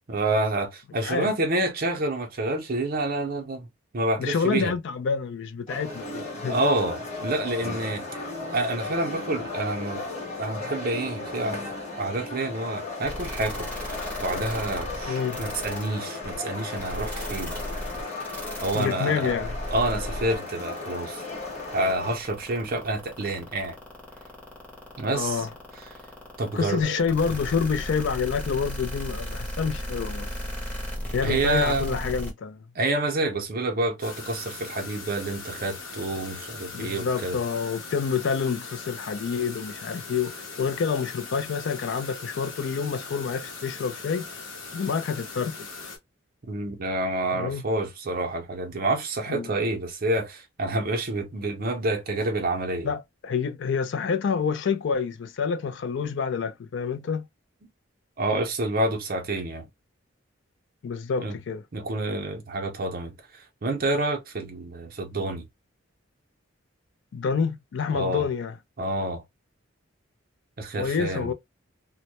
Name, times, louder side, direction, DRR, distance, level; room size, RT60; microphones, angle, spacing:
voice 1, 0.1-3.7 3.9-4.7 6.5-8.0 8.5-10.0 10.4-11.7 12.0-13.7 14.2-17.6 18.6-19.3 19.7-21.2 21.7-23.8 25.0-25.5 26.4-27.0 31.2-32.0 32.7-37.4 46.5-52.9 58.2-59.7 61.2-61.4 61.7-65.5 67.9-68.3 68.8-69.2 70.6-71.3, right 2 dB, 45° right, 0.5 m, -28 dB
voice 2, 4.2-6.6 15.1-15.4 18.7-19.5 25.1-25.5 26.5-30.3 31.1-32.6 36.7-40.3 40.6-44.2 44.7-45.5 47.3-47.6 49.3-49.5 52.8-57.3 60.8-61.6 67.1-68.5 70.7-71.3, left 6 dB, 60° left, 0.3 m, -28 dB
sound 1, 5.7-22.2, left 3 dB, 35° left, 1.0 m, -35 dB
sound 2, 13.0-32.3, equal, 5° left, 0.7 m, -35 dB
sound 3, 34.0-46.0, left 4 dB, 75° left, 0.8 m, -40 dB
2.1 x 2.1 x 2.8 m
head